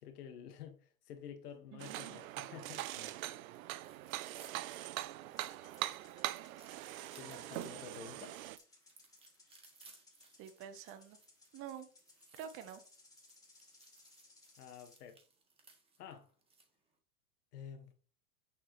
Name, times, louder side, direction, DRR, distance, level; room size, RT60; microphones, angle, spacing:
voice 1, 0.0-3.1 7.2-8.4 14.6-15.2 16.0-16.3 17.5-17.9, left 8 dB, 85° left, 1.8 m, -50 dB
voice 2, 1.7-2.2 10.4-11.2 11.5-11.9 12.4-12.8, right 9 dB, 30° right, 1.0 m, -47 dB
sound 1, 1.8-8.6, right 15 dB, 65° right, 0.7 m, -42 dB
sound 2, 3.1-16.7, right 4 dB, 10° right, 1.7 m, -64 dB
sound 3, 5.3-15.0, left 3 dB, 10° left, 2.3 m, -65 dB
7.7 x 7.0 x 3.2 m
supercardioid pair, 145°, 45 cm